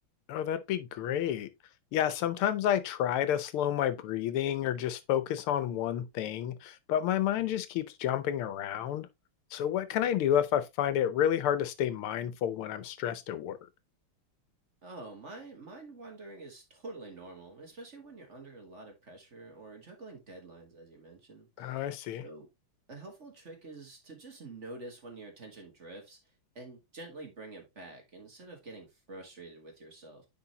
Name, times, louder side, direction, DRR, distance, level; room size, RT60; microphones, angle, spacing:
voice 1, 0.3-1.5 1.9-9.1 9.5-13.6 21.6-22.2, left 10 dB, 85° left, 1.7 m, -30 dB
voice 2, 14.8-21.9 22.2-22.5 22.9-30.3, right 2 dB, 35° right, 1.6 m, -47 dB
9.7 x 4.4 x 2.8 m
omnidirectional pair, 2.3 m